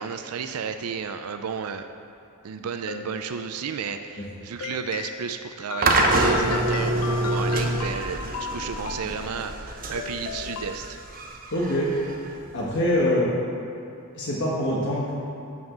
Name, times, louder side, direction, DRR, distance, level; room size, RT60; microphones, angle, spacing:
voice 1, 0.0-1.9 2.4-11.0, right 6 dB, 80° right, 8 dB, 0.4 m, -33 dB
sound 1, 2.6-3.9 4.6-10.8, left 6 dB, 75° left, 0.5 m, -37 dB
sound 2, 5.8-12.9, right 2 dB, 40° right, 0.9 m, -26 dB
voice 2, 11.5-11.9 12.5-13.3 14.1-15.1, left 1 dB, 55° left, -6 dB, 1.4 m, -24 dB
7.2 x 6.1 x 7.3 m, 2.8 s
head